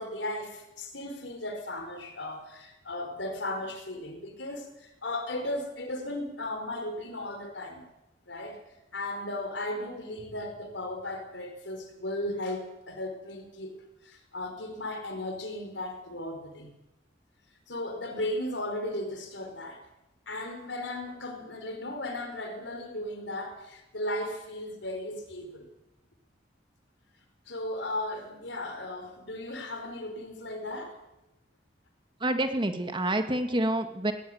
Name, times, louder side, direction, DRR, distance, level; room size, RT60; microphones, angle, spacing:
voice 1, 0.0-7.8 8.3-8.6 8.9-16.7 17.7-19.8 20.3-25.7 27.5-31.0, left 1 dB, 75° left, 6 dB, 5.1 m, -36 dB
voice 2, 32.2-34.1, right 1 dB, 25° right, 7 dB, 1.9 m, -28 dB
19.0 x 19.0 x 9.5 m, 0.95 s
head